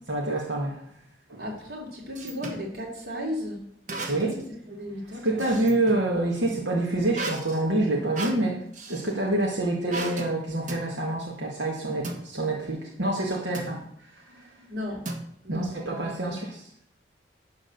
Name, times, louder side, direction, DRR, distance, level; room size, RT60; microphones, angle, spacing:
voice 1, 0.1-0.8 1.3-1.4 4.1-4.3 5.2-8.6 8.9-13.8 14.1-14.5 15.5-16.6, right 2 dB, 85° right, -2 dB, 2.0 m, -27 dB
voice 2, 1.4-3.6 4.2-4.3 4.6-5.6 14.7-15.1 15.4-16.4, left 1 dB, 60° right, -2 dB, 3.3 m, -35 dB
sound 1, 1.6-2.7 3.9-4.5 4.8-6.1 7.1-9.1 9.9-10.3 10.7-10.9 12.0-12.2 13.5-13.8 15.0-15.6, right 2 dB, 45° right, 1.4 m, -36 dB
12.0 x 4.1 x 7.9 m, 0.64 s
head